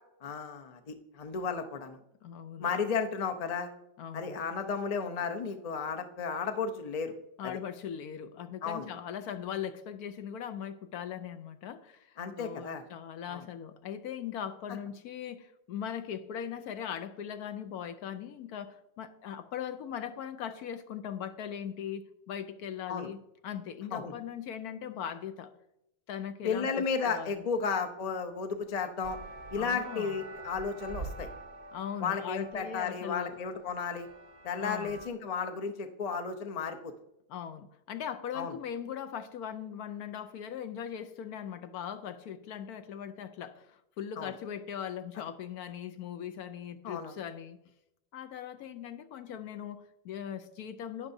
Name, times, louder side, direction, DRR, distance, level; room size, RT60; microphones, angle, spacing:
voice 1, 0.2-2.0 2.6-3.7 4.1-7.1 7.4-7.6 8.6-8.9 12.2-12.8 13.3-13.4 22.9-23.1 23.9-24.1 26.4-29.2 29.5-31.3 32.0-34.1 34.4-36.9 38.3-38.6 44.2-44.3 46.8-47.1, left 5 dB, 45° left, 0.5 m, -33 dB
voice 2, 2.2-2.7 4.0-4.4 7.4-25.5 26.1-27.5 29.5-30.2 31.7-33.4 34.6-35.0 37.3-47.6 48.1-51.1, left 9 dB, 70° left, 1.1 m, -40 dB
sound 1, 29.0-35.1, right 2 dB, 45° right, 0.6 m, -45 dB
12.0 x 9.6 x 2.7 m
omnidirectional pair, 1.7 m